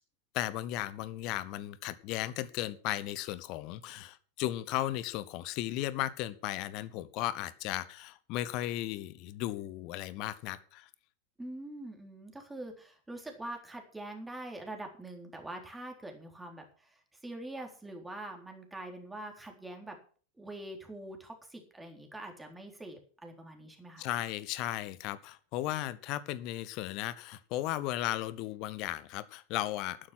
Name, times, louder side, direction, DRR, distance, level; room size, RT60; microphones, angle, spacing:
voice 1, 0.3-10.9 24.0-30.0, left 14 dB, 40° left, 16 dB, 1.2 m, -35 dB
voice 2, 11.4-20.0 20.4-24.1, right 1 dB, 5° right, 3 dB, 3.9 m, -44 dB
12.0 x 10.0 x 6.0 m, 0.42 s
figure-of-eight pair, 90°, 0 cm